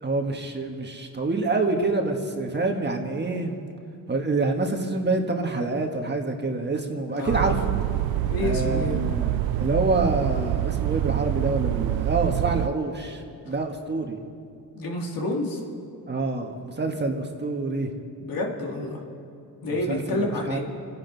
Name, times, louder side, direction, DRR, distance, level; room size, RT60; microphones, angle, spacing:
voice 1, 0.0-3.5 4.1-7.5 8.4-14.2 16.1-17.9 19.9-20.6, right 3 dB, 30° right, 3 dB, 1.5 m, -27 dB
voice 2, 7.1-7.6 8.3-9.0 13.5-13.6 14.7-15.6 18.2-19.0 19.6-20.6, left 2 dB, 65° left, -1 dB, 2.6 m, -29 dB
sound 1, 7.3-12.7, right 14 dB, 75° right, 0.5 m, -26 dB
28.5 x 10.5 x 4.1 m, 2.5 s
cardioid pair, 100°, 36 cm